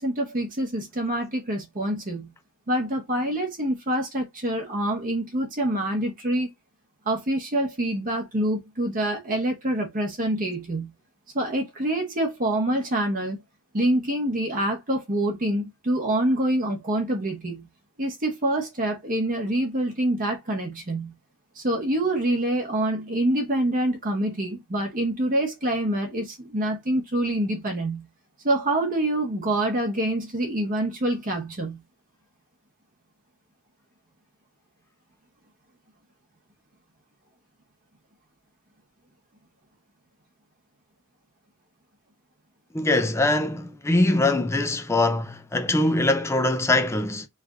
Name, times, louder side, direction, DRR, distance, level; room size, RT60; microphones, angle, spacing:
voice 1, 0.0-2.3 2.7-6.5 7.1-10.9 11.3-13.4 13.7-17.6 18.0-21.1 21.6-28.0 28.4-31.8, right 1 dB, 40° right, 0.9 m, -26 dB
voice 2, 42.7-47.3, left 2 dB, 10° left, 0.4 m, -22 dB
3.2 x 2.5 x 3.4 m
head